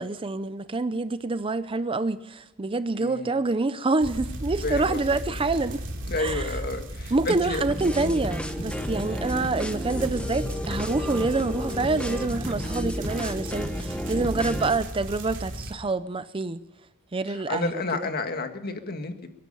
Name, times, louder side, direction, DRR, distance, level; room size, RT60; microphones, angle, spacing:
voice 1, 0.0-5.8 6.2-6.5 7.1-16.6 17.1-17.7 18.0-18.1, right 3 dB, 25° right, 0.5 m, -27 dB
voice 2, 3.0-3.4 4.6-5.4 6.1-7.7 8.6-8.9 13.0-13.3 17.3-19.3, left 3 dB, 45° left, 1.8 m, -31 dB
sound 1, 4.0-15.7, right 1 dB, 60° right, 2.9 m, -35 dB
sound 2, 7.7-14.8, equal, 5° left, 1.1 m, -33 dB
23.0 x 11.0 x 5.5 m
head